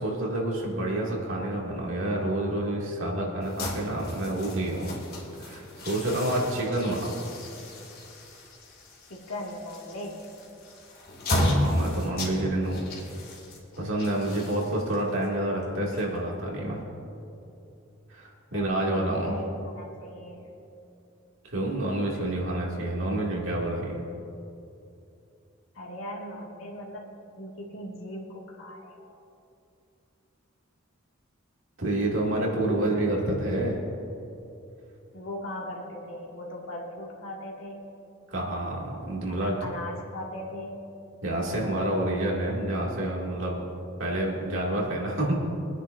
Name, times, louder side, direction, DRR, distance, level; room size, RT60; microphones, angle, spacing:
voice 1, 0.0-4.9 5.4-7.2 11.3-12.9 13.8-16.9 18.1-19.4 21.5-24.0 31.8-33.8 38.3-39.6 41.2-43.6 44.0-45.4, right 1 dB, 70° right, -3 dB, 2.5 m, -28 dB
sound 1, 3.4-16.5, left 1 dB, 50° left, 2.5 m, -34 dB
voice 2, 9.1-10.3 18.5-20.6 25.7-27.1 27.4-29.2 32.4-32.6 35.1-37.9 39.3-40.8, left 1 dB, 80° left, -3 dB, 2.3 m, -39 dB
24.5 x 9.8 x 2.7 m, 2.7 s
head